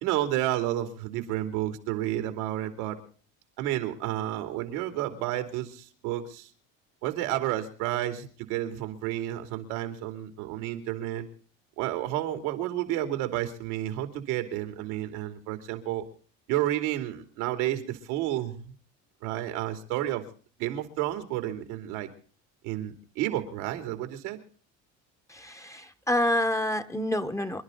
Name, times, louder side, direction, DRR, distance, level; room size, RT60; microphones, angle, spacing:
voice 1, 0.0-3.0 3.6-6.5 7.0-11.3 11.8-16.0 16.5-18.7 19.2-20.2 20.6-22.1 22.6-24.4, right 13 dB, 90° right, 7 dB, 3.1 m, -31 dB
voice 2, 25.3-27.6, left 1 dB, 10° left, 7 dB, 1.3 m, -28 dB
27.0 x 11.5 x 4.0 m, 0.43 s
supercardioid pair, 105°, 33 cm